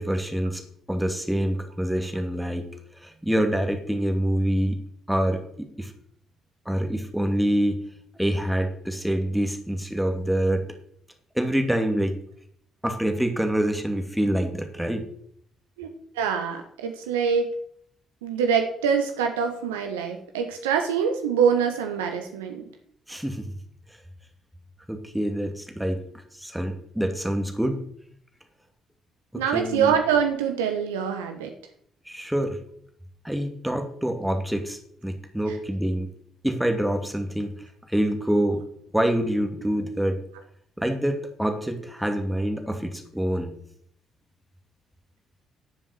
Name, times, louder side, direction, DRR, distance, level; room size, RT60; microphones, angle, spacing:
voice 1, 0.0-2.7 3.0-4.8 5.1-5.9 6.7-7.8 8.2-10.6 11.3-12.1 12.8-15.1 23.1-23.5 24.9-26.0 26.3-27.8 29.3-29.9 32.1-32.6 33.2-36.1 36.4-37.5 37.9-38.6 38.9-40.2 40.8-43.5, right 1 dB, 5° right, 5 dB, 2.6 m, -26 dB
voice 2, 16.1-17.5 18.2-22.7 29.3-31.5, right 7 dB, 80° right, 5 dB, 1.3 m, -24 dB
12.0 x 7.4 x 9.6 m, 0.66 s
figure-of-eight pair, 45°, 0 cm